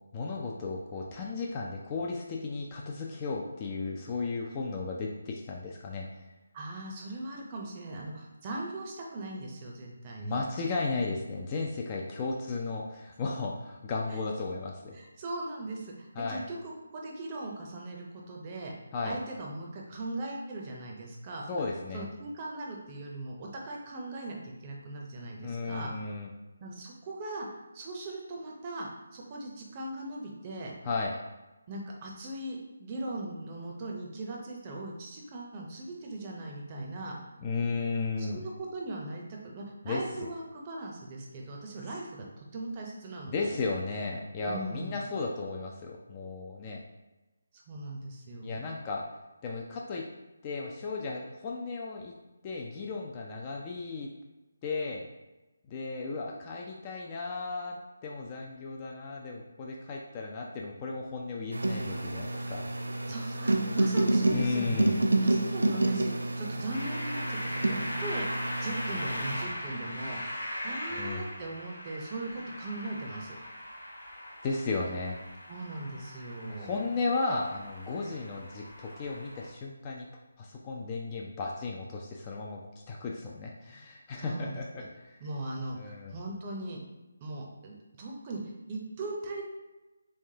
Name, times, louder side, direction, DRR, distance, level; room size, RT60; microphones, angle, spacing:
voice 1, 0.1-6.1 10.2-15.0 16.2-16.4 18.9-19.2 21.5-22.1 25.4-26.3 30.8-31.1 37.4-38.4 39.8-40.0 43.3-46.8 48.4-49.0 49.4-50.1 50.4-52.1 52.4-54.1 54.6-55.0 55.7-57.8 58.0-62.7 64.3-65.0 70.9-71.2 74.4-75.2 76.6-80.0 80.4-82.6 82.9-85.2 85.7-86.1, left 3 dB, 20° left, -1 dB, 0.4 m, -34 dB
voice 2, 6.5-10.4 14.1-14.2 14.9-18.7 19.0-21.6 21.9-25.9 26.6-27.5 27.7-30.7 31.7-37.1 38.2-43.6 44.5-45.0 47.7-48.7 63.1-64.9 65.2-70.2 70.6-73.4 75.5-76.9 84.1-84.9 85.2-86.8 87.2-89.4, right 2 dB, 25° right, -1 dB, 0.6 m, -39 dB
sound 1, 61.5-69.4, right 2 dB, 70° right, 0.4 m, -29 dB
sound 2, 66.7-79.5, left 1 dB, 75° left, 1.2 m, -40 dB
3.4 x 3.2 x 2.7 m, 1.1 s
figure-of-eight pair, 150°, 0 cm